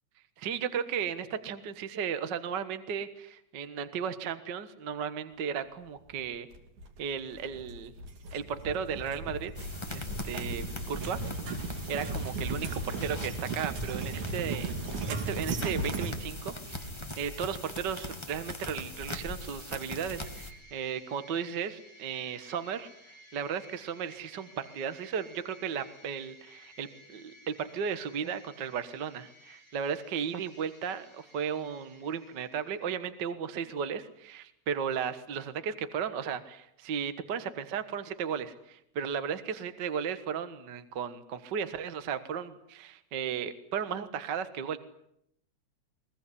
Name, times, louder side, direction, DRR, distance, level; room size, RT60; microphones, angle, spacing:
voice 1, 0.4-6.5 7.0-7.9 8.3-11.2 11.5-14.7 15.1-22.9 23.3-44.8, right 7 dB, 45° right, 11 dB, 1.6 m, -35 dB
sound 1, 6.5-16.1, right 3 dB, 85° right, 4.1 m, -36 dB
sound 2, 9.5-20.5, left 1 dB, 10° left, 1.9 m, -41 dB
sound 3, 20.1-33.0, left 1 dB, 30° left, 7.8 m, -56 dB
23.0 x 21.5 x 9.9 m, 0.75 s
omnidirectional pair, 3.4 m